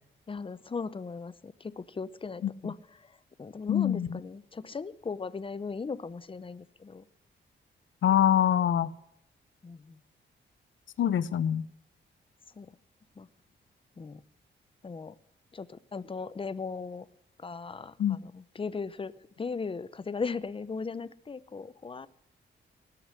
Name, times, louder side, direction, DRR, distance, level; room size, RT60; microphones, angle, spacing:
voice 1, 0.3-7.0 9.6-10.0 12.5-12.7 13.2-13.3 14.0-14.2 14.8-15.2 15.5-17.1 17.4-22.1, left 4 dB, 25° left, 17 dB, 0.7 m, -38 dB
voice 2, 3.7-4.2 8.0-8.9 11.0-11.6 18.0-18.2, left 10 dB, 75° left, 18 dB, 0.8 m, -24 dB
18.5 x 7.0 x 9.7 m, 0.81 s
cardioid pair, 105°, 20 cm